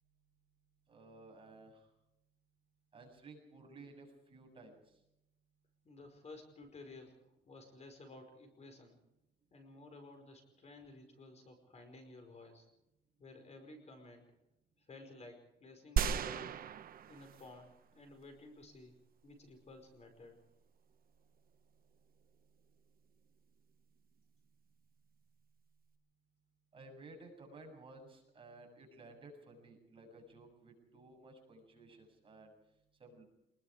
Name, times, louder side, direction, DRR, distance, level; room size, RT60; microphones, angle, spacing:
voice 1, 0.9-1.8 2.9-4.7 26.7-32.5 33.0-33.2, right 2 dB, 30° right, 2 dB, 7.4 m, -55 dB
voice 2, 5.8-9.0 9.5-12.7 13.2-14.3 14.8-16.6 17.1-19.0 19.2-20.5, left 2 dB, 35° left, 5 dB, 5.1 m, -55 dB
sound 1, 16.0-17.7 18.2-18.3, right 8 dB, 50° right, 1.0 m, -35 dB
26.5 x 21.0 x 5.0 m, 0.86 s
cardioid pair, 145°, 19 cm